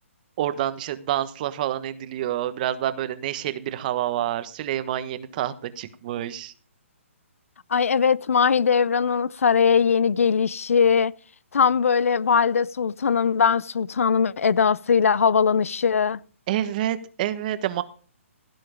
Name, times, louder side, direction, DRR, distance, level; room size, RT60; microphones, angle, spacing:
voice 1, 0.4-6.5 16.5-17.8, right 12 dB, 35° right, 1.2 m, -28 dB
voice 2, 7.7-11.1 11.5-16.2, left 6 dB, 75° left, 0.5 m, -20 dB
16.0 x 7.7 x 5.1 m
hypercardioid pair, 150°, 7 cm